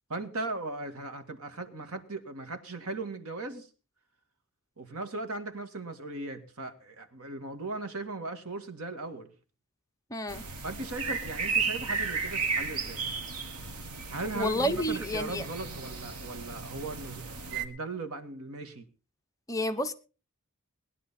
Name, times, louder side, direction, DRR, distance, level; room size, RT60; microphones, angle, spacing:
voice 1, 0.1-3.7 4.8-9.3 10.6-13.1 14.1-18.9, right 2 dB, 75° right, 1.9 m, -38 dB
voice 2, 10.1-10.4 14.3-15.4 19.5-19.9, equal, 15° left, 0.9 m, -30 dB
sound 1, 10.3-17.7, right 5 dB, 90° right, 1.7 m, -34 dB
19.5 x 11.0 x 4.2 m
head